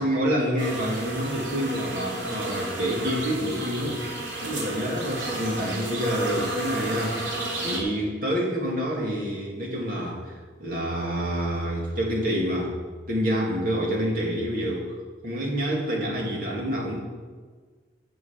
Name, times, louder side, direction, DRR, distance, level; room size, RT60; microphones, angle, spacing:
voice 1, 0.0-4.0 4.4-12.8 13.1-14.9 15.2-17.0, equal, 50° right, -2 dB, 2.6 m, -27 dB
sound 1, 0.6-7.8, right 1 dB, 90° right, 2.9 m, -32 dB
11.5 x 7.1 x 7.2 m, 1.5 s
head